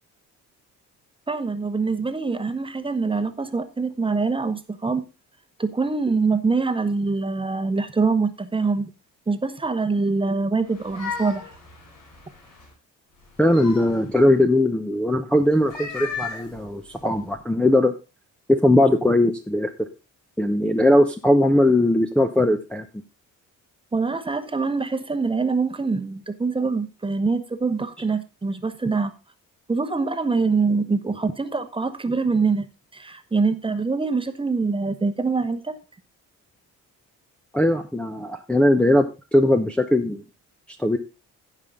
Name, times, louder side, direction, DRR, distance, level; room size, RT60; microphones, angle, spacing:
voice 1, 1.3-5.0 5.6-8.9 9.3-11.5 23.9-29.1 29.7-32.7 32.9-35.8, right 4 dB, 15° right, 1.0 m, -24 dB
sound 1, 10.6-12.7 13.2-14.4 15.5-17.3, left 6 dB, 65° left, 6.5 m, -36 dB
voice 2, 13.4-17.9 18.5-19.9 20.4-22.8 37.5-40.2 40.8-41.0, left 1 dB, 5° left, 0.8 m, -19 dB
15.5 x 5.6 x 3.6 m
cardioid pair, 125°, 33 cm